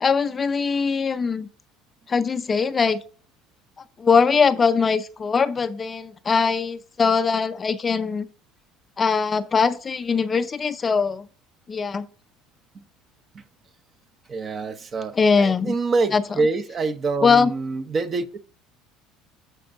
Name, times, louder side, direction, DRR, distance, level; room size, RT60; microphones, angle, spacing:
voice 1, 0.0-1.5 2.1-3.0 4.0-8.3 9.0-11.3 11.7-12.1 15.2-15.7 16.1-16.2 17.2-17.5, left 5 dB, 20° left, 0.4 m, -21 dB
voice 2, 14.3-18.4, right 3 dB, 30° right, 0.7 m, -26 dB
14.5 x 5.3 x 2.6 m
cardioid pair, 140°, 0 cm